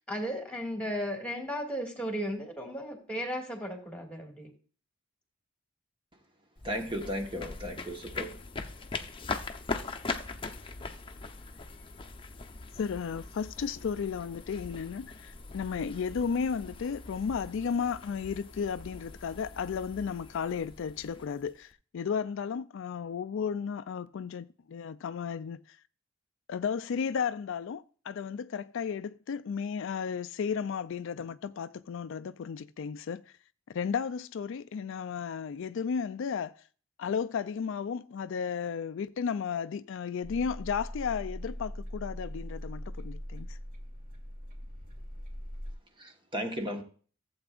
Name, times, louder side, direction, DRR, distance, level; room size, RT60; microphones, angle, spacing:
voice 1, 0.1-4.5, equal, 5° left, 2.1 m, -35 dB
sound 1, 6.6-21.7, left 3 dB, 25° left, 0.8 m, -41 dB
voice 2, 6.6-8.4 46.0-46.8, equal, 25° right, 1.3 m, -35 dB
voice 3, 12.8-25.8 26.5-33.2 33.7-36.5 37.0-43.6, left 6 dB, 65° left, 0.4 m, -34 dB
sound 2, 40.2-45.7, equal, 45° right, 2.6 m, -41 dB
15.0 x 7.9 x 2.5 m
head